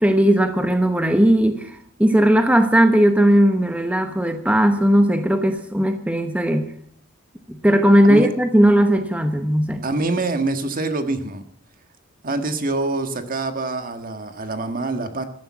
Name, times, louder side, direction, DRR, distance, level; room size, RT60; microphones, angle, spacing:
voice 1, 0.0-6.7 7.5-9.8, equal, 5° right, 7 dB, 1.0 m, -17 dB
voice 2, 9.8-11.4 12.2-15.2, right 2 dB, 45° right, 7 dB, 1.6 m, -25 dB
15.0 x 12.0 x 7.3 m, 0.63 s
head